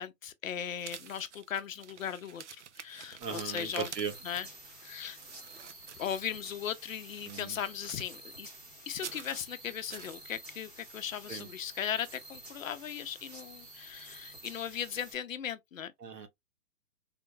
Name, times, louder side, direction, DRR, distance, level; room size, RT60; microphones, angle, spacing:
voice 1, 0.0-3.9 4.2-4.5 4.8-5.2 6.0-8.5 8.9-15.9, left 9 dB, 55° left, 0.6 m, -38 dB
sound 1, 0.6-6.5 6.9-8.2 8.9-9.4 9.9-10.2, right 7 dB, 50° right, 0.4 m, -48 dB
sound 2, 3.2-15.1, right 2 dB, 25° right, 1.2 m, -50 dB
voice 2, 3.2-4.1 7.2-7.6 11.3-11.5 16.0-16.3, right 6 dB, 90° right, 1.2 m, -37 dB
3.6 x 2.9 x 2.2 m
hypercardioid pair, 160°, 47 cm